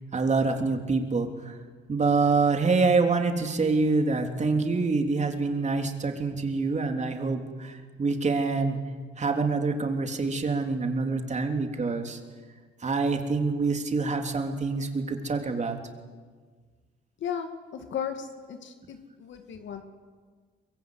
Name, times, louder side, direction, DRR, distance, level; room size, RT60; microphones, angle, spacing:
voice 1, 0.1-1.5 1.9-8.8 9.2-12.2 12.8-15.8, right 4 dB, 35° right, 4 dB, 3.5 m, -26 dB
voice 2, 17.2-19.8, left 8 dB, 70° left, 6 dB, 2.3 m, -35 dB
24.0 x 21.5 x 9.6 m, 1.5 s
cardioid pair, 90°, 20 cm